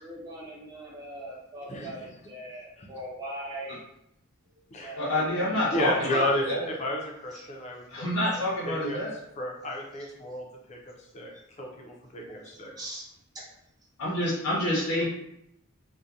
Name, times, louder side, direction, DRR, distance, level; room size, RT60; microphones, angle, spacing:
voice 1, 0.0-3.8 4.8-6.0 12.8-13.1 13.3-13.4, right 1 dB, 20° right, -4 dB, 0.6 m, -40 dB
voice 2, 1.7-2.1 2.8-2.9 4.7-5.0 5.7-8.1 8.3-9.0 9.4-11.3 11.6-12.9, left 1 dB, 35° left, 0 dB, 0.4 m, -33 dB
voice 3, 5.0-6.7 7.9-9.1 14.0-15.0, left 1 dB, 85° left, -6 dB, 0.7 m, -27 dB
2.7 x 2.1 x 2.3 m, 0.77 s
head